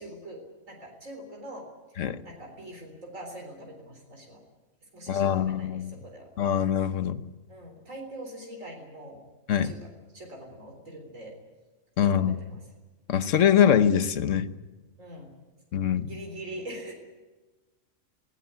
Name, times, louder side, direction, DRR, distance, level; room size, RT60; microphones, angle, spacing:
voice 1, 0.0-1.7 2.2-4.4 4.9-6.3 7.5-9.2 9.6-11.4 12.0-12.7 15.0-15.3 15.9-16.9, right 1 dB, 75° right, 2 dB, 4.2 m, -43 dB
voice 2, 5.1-5.9 6.4-7.2 9.5-9.7 12.0-12.4 13.1-14.5 15.7-16.1, left 9 dB, 70° left, 12 dB, 1.3 m, -23 dB
19.0 x 18.0 x 9.7 m, 1.2 s
omnidirectional pair, 1.4 m